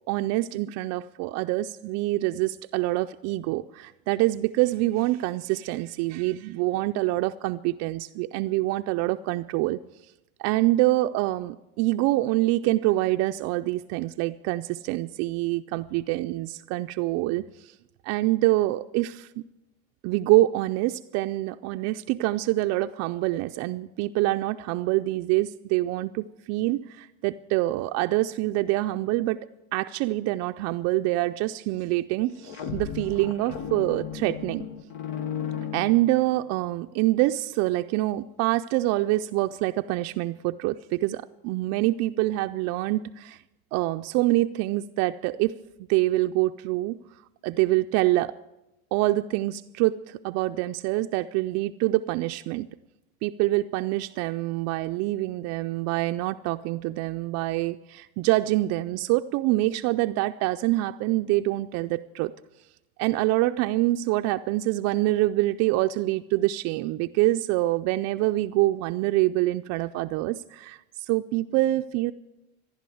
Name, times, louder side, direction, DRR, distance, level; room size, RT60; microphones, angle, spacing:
voice 1, 0.1-9.8 10.4-17.7 18.0-19.4 20.0-34.7 35.7-43.4 43.7-45.5 45.9-47.0 47.4-48.3 48.9-52.7 53.2-62.3 63.0-72.1, right 17 dB, 55° right, 7 dB, 0.4 m, -25 dB
sound 1, 32.3-36.6, left 8 dB, 70° left, 1.3 m, -35 dB
14.5 x 11.0 x 7.7 m, 0.96 s
cardioid pair, 150°, 31 cm